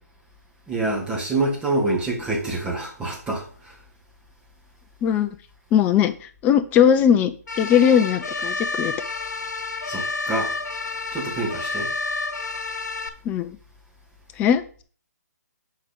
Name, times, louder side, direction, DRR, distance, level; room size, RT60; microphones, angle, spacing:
voice 1, 0.7-3.7 9.9-10.5 11.1-11.9, right 2 dB, 10° right, 2.3 m, -26 dB
voice 2, 5.7-6.1 6.4-7.3 7.6-8.9 13.3-13.5 14.4-14.8, left 8 dB, 15° left, 0.5 m, -19 dB
sound 1, 7.5-13.1, left 3 dB, 75° left, 1.3 m, -29 dB
6.6 x 4.5 x 5.4 m
figure-of-eight pair, 140°, 9 cm